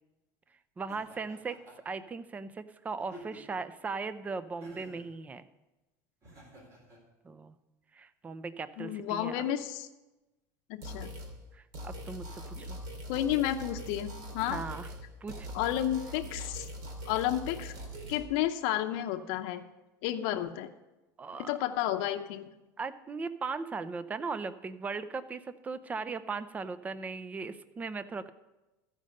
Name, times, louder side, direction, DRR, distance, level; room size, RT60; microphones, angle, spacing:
voice 1, 0.8-1.6 1.8-5.4 7.2-7.5 7.9-9.4 11.5-12.8 14.5-14.9 15.2-15.5 21.2-21.5 22.8-28.3, right 4 dB, 15° right, 14 dB, 0.5 m, -38 dB
Laughter, 0.9-2.0 3.0-3.7 4.6-5.1 6.2-7.0, right 1 dB, 35° right, 3.5 m, -51 dB
voice 2, 8.8-9.9 10.7-11.1 13.1-14.6 15.5-16.7 17.0-17.7 18.1-19.6 20.0-20.7 21.4-22.5, left 12 dB, 70° left, 5 dB, 0.7 m, -31 dB
sound 1, 10.8-11.3 11.7-15.0 15.3-18.2, equal, 55° right, 2.5 m, -42 dB
14.0 x 5.3 x 6.5 m, 1.1 s
supercardioid pair, 130°, 9 cm